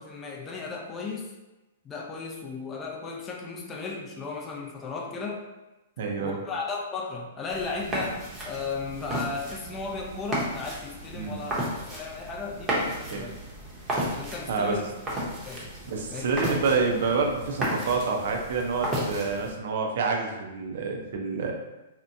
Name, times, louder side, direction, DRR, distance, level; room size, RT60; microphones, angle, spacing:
voice 1, 0.0-1.3 1.8-5.5 6.2-13.4 14.2-14.8 15.4-15.7 16.1-16.5, left 4 dB, 20° left, -1 dB, 0.4 m, -35 dB
voice 2, 6.0-6.4 11.1-11.4 13.1-13.3 14.5-14.8 15.9-21.5, right 4 dB, 65° right, 2 dB, 0.5 m, -28 dB
sound 1, 7.5-19.5, right 1 dB, 20° right, 0.7 m, -34 dB
2.8 x 2.1 x 2.5 m, 1.0 s
hypercardioid pair, 135°, 0 cm